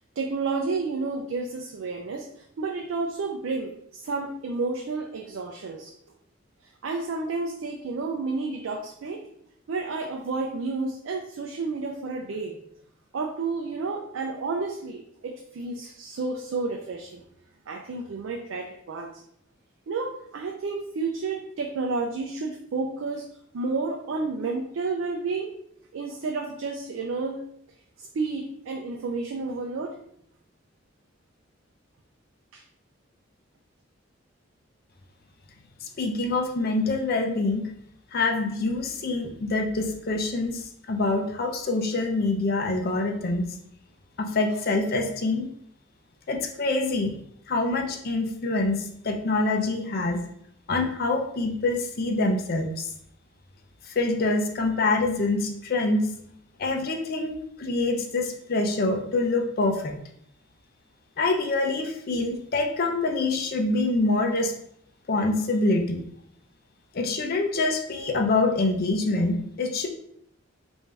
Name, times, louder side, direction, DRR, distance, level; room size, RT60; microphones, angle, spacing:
voice 1, 0.0-5.9 6.8-9.2 9.7-12.6 13.1-17.2 17.7-19.2 19.9-23.2 23.5-25.5 25.9-27.4 28.0-29.9 32.5-32.6, right 3 dB, 85° right, 1 dB, 0.4 m, -31 dB
voice 2, 35.8-37.7 38.1-43.5 44.2-45.5 46.3-47.1 47.5-50.2 50.7-52.9 53.8-56.1 56.6-60.0 61.2-64.5 65.1-66.0 66.9-69.9, left 2 dB, 50° left, 3 dB, 0.5 m, -25 dB
3.2 x 2.6 x 3.3 m, 0.70 s
head